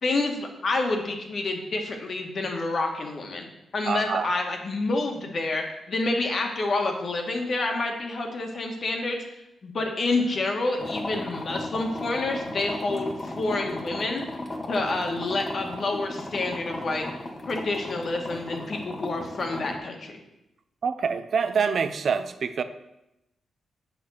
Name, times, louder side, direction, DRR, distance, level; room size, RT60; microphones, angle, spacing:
voice 1, 0.0-3.4 3.7-9.2 9.6-14.2 14.7-17.0 17.5-20.1, left 2 dB, 55° left, 3 dB, 1.8 m, -28 dB
voice 2, 3.9-4.4 20.8-22.6, right 6 dB, 60° right, 11 dB, 0.6 m, -26 dB
sound 1, 10.8-19.8, left 1 dB, 35° left, 1.5 m, -35 dB
8.2 x 5.7 x 6.5 m, 0.89 s
cardioid pair, 85°, 0 cm